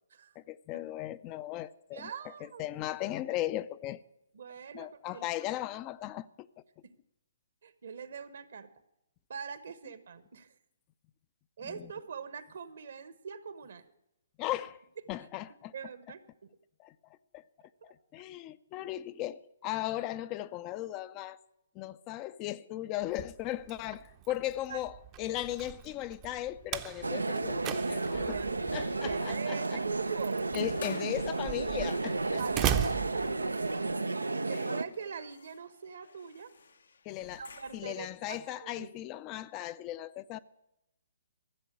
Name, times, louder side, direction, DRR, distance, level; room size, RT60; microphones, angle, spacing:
voice 1, 0.4-4.0 4.7-6.5 11.6-11.9 14.4-14.8 15.1-15.7 16.8-16.9 17.3-17.4 17.8-21.4 21.7-28.4 28.7-29.8 30.5-32.4 34.5-34.7 37.0-37.4 37.7-40.4, left 14 dB, 25° left, 0.4 m, -37 dB
voice 2, 1.9-2.6 4.3-5.6 6.8-6.9 7.6-8.7 9.3-10.5 11.6-13.9 15.7-16.5 17.8-17.9 24.7-24.8 28.2-30.4 32.4-33.3 34.3-36.5 37.3-38.9, right 6 dB, 65° right, 1.2 m, -43 dB
Slam, 23.0-33.9, right 10 dB, 25° right, 0.7 m, -39 dB
sound 1, 27.0-34.8, right 3 dB, 90° right, 0.5 m, -32 dB
sound 2, 30.6-38.1, left 5 dB, 75° left, 0.9 m, -53 dB
14.5 x 7.5 x 8.5 m
figure-of-eight pair, 135°, 0 cm